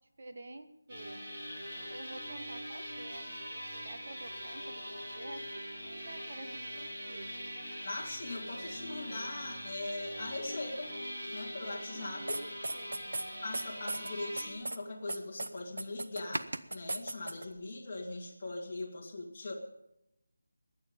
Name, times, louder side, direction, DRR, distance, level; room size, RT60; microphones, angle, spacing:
voice 1, 0.2-1.2 1.9-6.5 6.7-7.3 11.9-12.4 12.7-13.0, right 2 dB, 35° right, 7 dB, 1.2 m, -49 dB
sound 1, 0.9-14.5, equal, 15° right, 3.9 m, -42 dB
voice 2, 7.8-10.9 11.3-12.4 13.4-19.5, left 2 dB, 20° left, -2 dB, 2.2 m, -41 dB
sound 2, 12.3-13.2 13.5-14.1 14.4-14.8 15.1-17.5, right 2 dB, 80° right, 1.1 m, -36 dB
22.0 x 9.6 x 5.3 m, 0.83 s
figure-of-eight pair, 180°, 0 cm